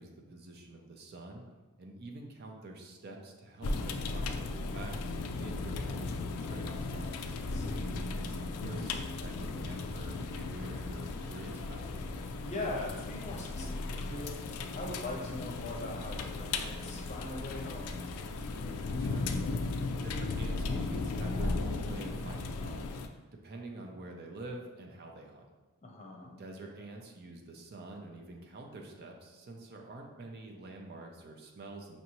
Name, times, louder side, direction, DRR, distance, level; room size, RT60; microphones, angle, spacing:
voice 1, 0.0-1.4 1.8-5.0 5.4-7.3 8.1-11.9 18.9-19.3 20.0-22.9 23.4-25.4 26.4-32.0, right 2 dB, 45° right, 2 dB, 0.5 m, -47 dB
sound 1, 3.6-23.1, left 3 dB, 80° left, 0.3 m, -36 dB
voice 2, 7.4-8.0 12.4-14.4 14.7-18.0 25.8-26.4, left 2 dB, 30° left, -1 dB, 0.7 m, -41 dB
5.3 x 2.6 x 2.9 m, 1.2 s
head